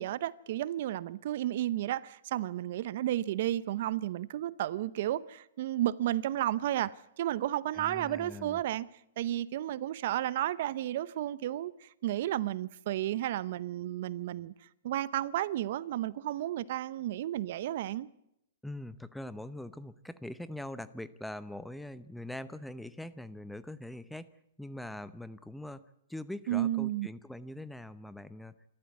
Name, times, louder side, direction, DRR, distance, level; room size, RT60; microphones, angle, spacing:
voice 1, 0.0-8.9 9.2-14.5 14.8-18.1 26.5-27.1, right 13 dB, 55° right, 0.7 m, -32 dB
voice 2, 7.7-8.6 18.6-24.3 24.6-25.8 26.1-28.6, left 1 dB, ahead, 0.8 m, -42 dB
27.5 x 13.5 x 8.3 m
hypercardioid pair, 140°, 0 cm